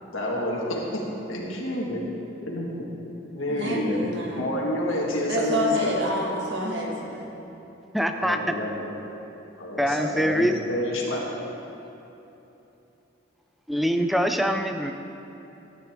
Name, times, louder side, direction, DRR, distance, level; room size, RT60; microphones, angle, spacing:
voice 1, 0.1-0.8 1.3-2.0 2.4-2.8 3.3-6.0 8.2-8.9 9.6-11.2, left 1 dB, 85° left, -3 dB, 1.7 m, -29 dB
voice 2, 3.5-4.5 5.3-7.3, equal, 65° right, -2 dB, 1.7 m, -28 dB
voice 3, 7.9-8.4 9.8-10.6 13.7-14.9, equal, ahead, 6 dB, 0.4 m, -24 dB
13.5 x 8.6 x 3.6 m, 3.0 s
head